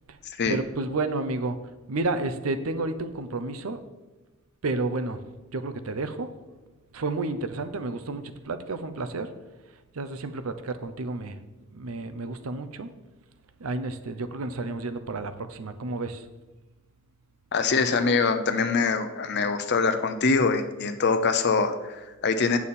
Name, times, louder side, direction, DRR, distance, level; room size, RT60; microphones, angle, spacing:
voice 1, 0.5-1.6 1.9-3.8 4.6-5.2 5.5-6.3 6.9-9.3 9.7-11.4 11.7-12.9 13.6-16.3, right 3 dB, 80° right, 10 dB, 0.7 m, -31 dB
voice 2, 17.5-22.6, left 4 dB, 50° left, 8 dB, 0.6 m, -24 dB
8.5 x 7.1 x 4.2 m, 1.1 s
head